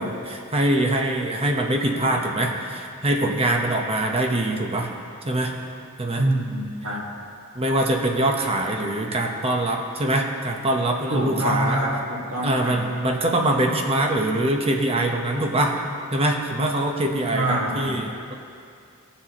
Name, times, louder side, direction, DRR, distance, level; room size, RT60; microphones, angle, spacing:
voice 1, 0.0-4.9 5.2-5.5 6.0-6.2 7.5-11.8 12.4-15.7 16.1-18.3, right 1 dB, 25° right, 2 dB, 0.9 m, -23 dB
voice 2, 6.2-7.1 11.1-12.8 17.3-17.9, right 1 dB, 70° right, -3 dB, 1.9 m, -25 dB
17.5 x 7.2 x 3.0 m, 2.3 s
head